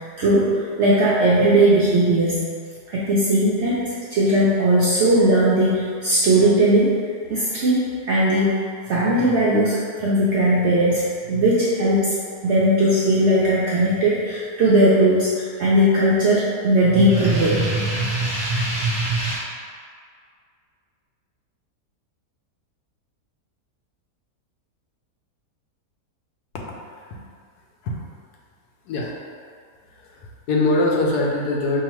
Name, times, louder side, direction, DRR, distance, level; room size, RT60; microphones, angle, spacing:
voice 1, 0.0-2.4 2.9-7.0 7.3-7.8 8.1-12.2 12.4-19.4, right 1 dB, 70° right, -7 dB, 0.7 m, -19 dB
voice 2, 30.0-31.8, left 2 dB, 75° left, -1 dB, 1.1 m, -22 dB
4.8 x 2.8 x 3.0 m, 2.1 s
omnidirectional pair, 1.7 m